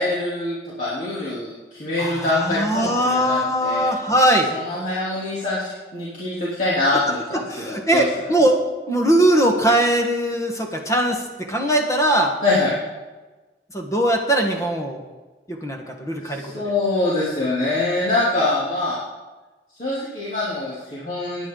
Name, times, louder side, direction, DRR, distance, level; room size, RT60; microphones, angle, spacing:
voice 1, 0.0-3.9 4.5-8.0 12.4-12.7 16.2-19.0 19.8-21.5, left 2 dB, 45° left, -9 dB, 3.0 m, -24 dB
voice 2, 2.0-4.5 7.3-11.2 11.5-12.3 13.7-15.0 15.5-16.4, right 1 dB, 15° left, 1 dB, 1.3 m, -20 dB
19.0 x 9.8 x 3.9 m, 1.2 s
head